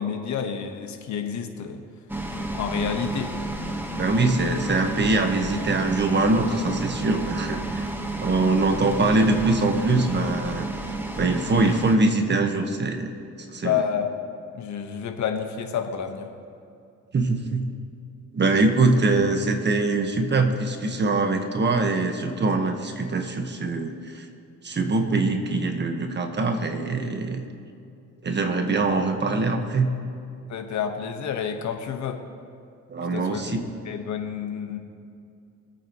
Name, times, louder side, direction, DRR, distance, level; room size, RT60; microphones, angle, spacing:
voice 1, 0.0-1.8 2.5-3.3 13.6-14.1 14.5-16.3 30.5-32.2 33.1-34.8, left 8 dB, 70° left, 5 dB, 1.4 m, -29 dB
sound 1, 2.1-12.0, right 1 dB, 5° right, 1.3 m, -31 dB
voice 2, 4.0-7.9 8.2-10.7 11.2-13.1 13.5-13.8 17.1-17.7 18.3-24.3 24.6-27.4 28.2-29.9 32.9-33.7, right 3 dB, 35° right, 5 dB, 1.5 m, -23 dB
25.0 x 8.8 x 3.1 m, 2.5 s
cardioid pair, 90°, 30 cm